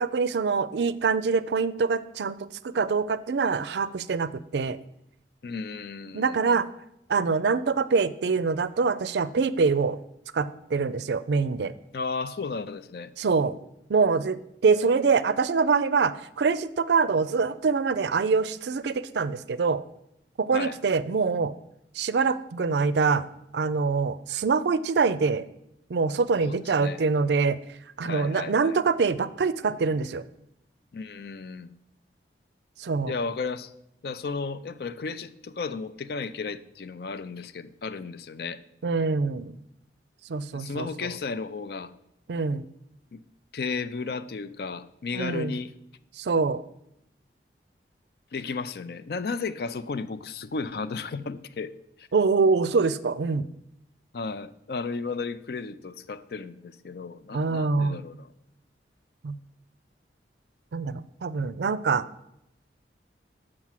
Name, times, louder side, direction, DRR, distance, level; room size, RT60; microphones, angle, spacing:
voice 1, 0.0-2.4 2.7-4.8 6.1-6.7 7.1-10.0 10.3-11.7 13.2-13.5 13.9-19.8 20.4-21.5 22.0-23.2 23.5-25.4 25.9-27.6 28.0-30.2 32.8-33.1 38.8-39.5 40.3-40.9 42.3-42.6 45.1-45.5 46.2-46.6 52.1-53.4 57.3-58.0 59.2-59.3 60.7-62.0, right 4 dB, 70° right, 0.4 m, -24 dB
voice 2, 5.4-6.6 11.9-13.1 20.5-20.8 26.4-27.0 28.0-28.8 30.9-31.7 33.0-33.7 34.0-38.6 40.5-41.9 43.1-43.2 43.5-45.7 48.3-51.7 52.0-52.1 54.1-58.3 61.3-61.4, left 4 dB, 55° left, 0.4 m, -34 dB
6.3 x 6.1 x 7.3 m
head